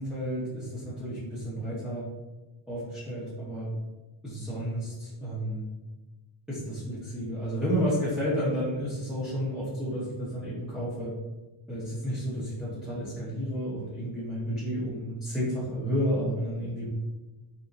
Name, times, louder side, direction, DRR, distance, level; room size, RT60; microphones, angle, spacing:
voice 1, 0.0-2.0 2.7-3.7 4.2-5.6 6.5-11.1 11.7-16.9, equal, ahead, -11 dB, 1.0 m, -31 dB
3.6 x 2.8 x 2.6 m, 1.1 s
wide cardioid pair, 95°, 49 cm